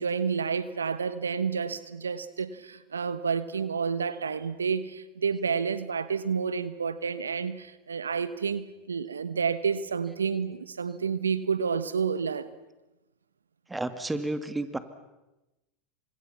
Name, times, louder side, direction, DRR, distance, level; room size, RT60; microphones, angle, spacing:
voice 1, 0.0-12.5, right 6 dB, 90° right, 15 dB, 1.2 m, -30 dB
voice 2, 13.7-14.8, right 2 dB, 10° right, 11 dB, 2.3 m, -31 dB
29.5 x 25.5 x 5.9 m, 1.0 s
hypercardioid pair, 90°, 0 cm